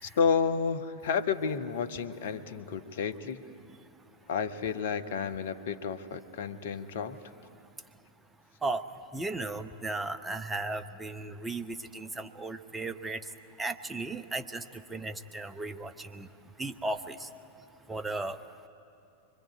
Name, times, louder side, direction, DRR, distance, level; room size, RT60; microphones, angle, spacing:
voice 1, 0.2-3.4 4.3-7.2, left 6 dB, 60° left, 13 dB, 1.2 m, -31 dB
voice 2, 9.1-13.2 13.6-14.6 14.9-16.3 16.6-17.3 17.9-18.4, right 2 dB, 10° right, 10 dB, 1.1 m, -35 dB
25.0 x 24.5 x 9.7 m, 2.7 s
figure-of-eight pair, 90°, 0 cm